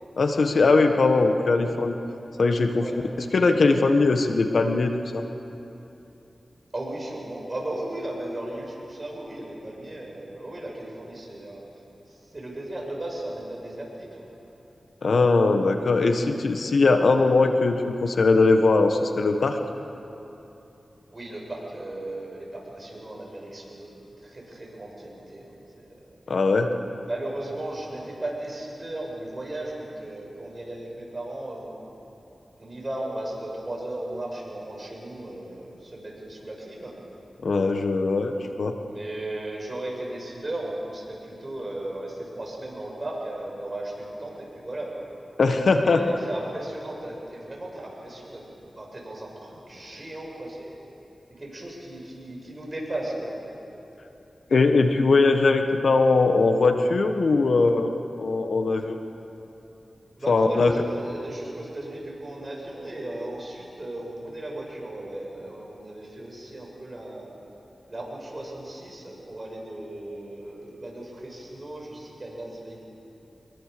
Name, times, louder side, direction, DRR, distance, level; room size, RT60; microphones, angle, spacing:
voice 1, 0.2-2.0 2.4-2.9 3.2-5.2 15.0-19.6 26.3-26.7 37.4-38.7 45.4-46.0 54.5-59.0 60.3-60.7, left 3 dB, 75° left, 6 dB, 1.4 m, -20 dB
voice 2, 6.7-11.7 12.1-14.2 21.1-24.0 24.2-25.9 27.1-31.8 32.6-37.0 38.9-45.1 45.8-50.7 51.3-53.8 60.2-67.4 67.9-72.8, right 1 dB, 35° right, -2 dB, 6.9 m, -36 dB
24.5 x 22.0 x 6.9 m, 3.0 s
cardioid pair, 65°, 0 cm